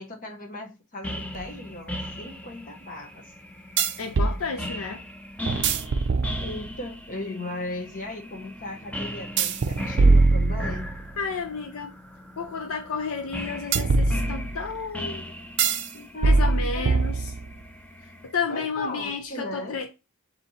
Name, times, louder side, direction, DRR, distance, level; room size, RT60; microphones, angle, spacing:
voice 1, 0.0-3.2 6.4-10.9 15.9-17.1 18.5-19.8, left 2 dB, 40° left, 0.8 m, -37 dB
sound 1, 1.0-18.3, left 1 dB, 5° left, 0.5 m, -38 dB
sound 2, 1.3-1.4 3.8-4.4 5.5-6.8 9.4-11.1 13.7-14.7 15.6-15.9 16.2-17.6, right 3 dB, 55° right, 0.5 m, -22 dB
voice 2, 4.0-5.0 11.2-11.9 12.4-15.3 16.2-17.3 18.2-19.9, left 5 dB, 65° left, 0.5 m, -31 dB
4.1 x 2.8 x 4.1 m
head